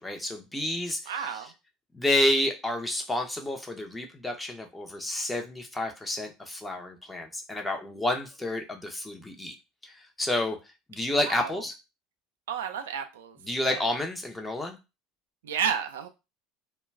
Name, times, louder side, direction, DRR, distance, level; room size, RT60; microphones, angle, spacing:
voice 1, 0.0-1.5 1.9-9.6 9.8-10.6 10.9-11.8 13.4-14.8, left 1 dB, 10° left, 0.7 m, -30 dB
voice 2, 1.1-1.5 11.3-11.5 12.5-13.4 13.6-13.9 15.4-16.1, right 7 dB, 80° right, 0.4 m, -31 dB
2.2 x 2.2 x 3.3 m
hypercardioid pair, 75°, 0 cm